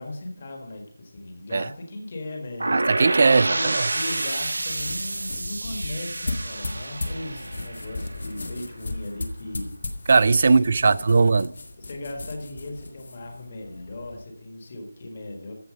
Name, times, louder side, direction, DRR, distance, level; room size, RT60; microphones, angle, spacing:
voice 1, 0.0-2.7 3.4-10.0 10.4-11.3 11.8-15.5, left 2 dB, 30° left, 1.6 m, -37 dB
sound 1, 2.6-8.5, right 2 dB, 75° right, 1.1 m, -28 dB
voice 2, 2.7-3.8 10.1-11.5, right 4 dB, 35° right, 0.3 m, -19 dB
sound 2, 4.5-14.2, left 2 dB, 50° left, 1.3 m, -36 dB
14.5 x 4.8 x 5.1 m
figure-of-eight pair, 175°, 0 cm